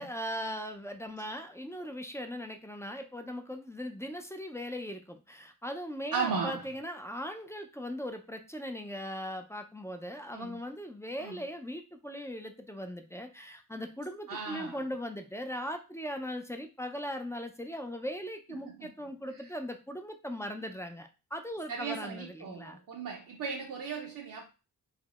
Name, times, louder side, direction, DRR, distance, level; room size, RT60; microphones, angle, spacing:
voice 1, 0.0-22.8, equal, 10° left, 0.4 m, -39 dB
voice 2, 6.1-6.6 10.3-10.6 11.2-11.4 14.3-14.8 18.5-18.9 19.3-19.5 21.7-24.4, right 5 dB, 60° right, 0.6 m, -36 dB
3.5 x 2.0 x 2.3 m
cardioid pair, 45°, 38 cm